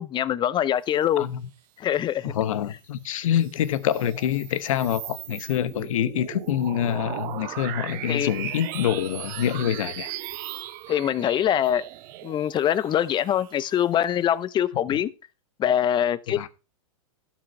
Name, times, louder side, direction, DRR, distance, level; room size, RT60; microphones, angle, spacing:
voice 1, 0.0-1.3 1.8-2.3 8.1-8.3 10.9-11.8 12.2-15.1 15.6-16.4, left 10 dB, 25° left, 0.7 m, -23 dB
voice 2, 1.2-1.5 2.2-10.1 16.3-16.5, left 10 dB, 70° left, 1.1 m, -26 dB
sound 1, 3.2-14.1, right 13 dB, 50° right, 1.1 m, -38 dB
12.5 x 6.2 x 4.6 m
hypercardioid pair, 110°, 17 cm